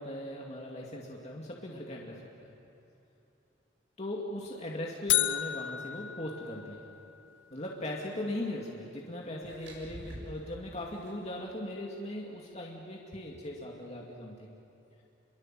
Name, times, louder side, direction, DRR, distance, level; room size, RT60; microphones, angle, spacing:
voice 1, 0.0-2.2 4.0-6.9 7.5-14.5, left 1 dB, 35° left, -2 dB, 2.3 m, -39 dB
sound 1, 5.1-7.2, left 14 dB, 70° left, 0.7 m, -32 dB
sound 2, 8.1-8.3 9.4-11.4, right 1 dB, 70° right, 7.5 m, -48 dB
29.0 x 23.0 x 7.6 m, 3.0 s
head